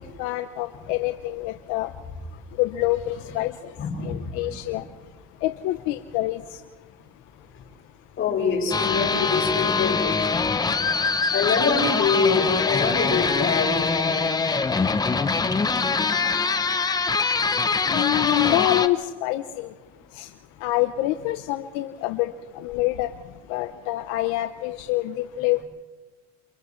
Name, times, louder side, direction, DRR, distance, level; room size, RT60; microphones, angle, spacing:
voice 1, 0.2-1.9 2.6-3.5 4.0-4.8 5.4-6.4 17.9-19.7 20.2-20.3 20.6-22.3 22.6-23.1 23.5-25.6, left 16 dB, 85° left, 8 dB, 0.8 m, -26 dB
voice 2, 3.8-4.8 8.2-10.2 11.3-14.2, left 5 dB, 45° left, -1 dB, 6.8 m, -25 dB
sound 1, 8.7-18.9, left 4 dB, 15° left, 0.7 m, -23 dB
29.5 x 28.5 x 3.2 m, 1.3 s
cardioid pair, 140°, 29 cm